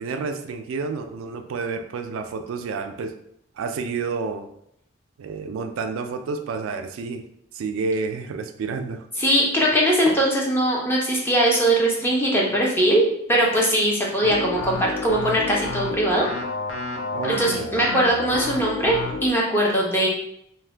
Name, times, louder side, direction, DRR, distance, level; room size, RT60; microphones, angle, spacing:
voice 1, 0.0-3.1 3.6-4.5 5.2-7.2 7.5-9.0 17.1-17.7, right 4 dB, 85° right, 7 dB, 0.3 m, -29 dB
voice 2, 9.2-13.0 13.3-16.3 17.2-20.1, right 1 dB, 10° left, -3 dB, 0.5 m, -21 dB
sound 1, 14.2-19.3, left 3 dB, 80° left, 0.5 m, -30 dB
2.4 x 2.1 x 3.3 m, 0.75 s
head